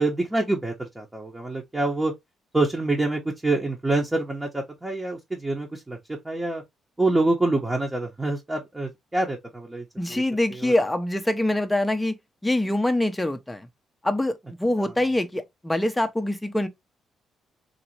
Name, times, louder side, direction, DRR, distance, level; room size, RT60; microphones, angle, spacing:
voice 1, 0.0-2.1 2.5-6.0 6.2-6.6 7.0-10.2 10.5-10.7, right 2 dB, 15° right, 1.1 m, -26 dB
voice 2, 10.0-12.2 12.4-13.7 14.0-16.7, left 1 dB, 10° left, 0.8 m, -24 dB
4.0 x 2.9 x 2.9 m
cardioid pair, 90°, 0 cm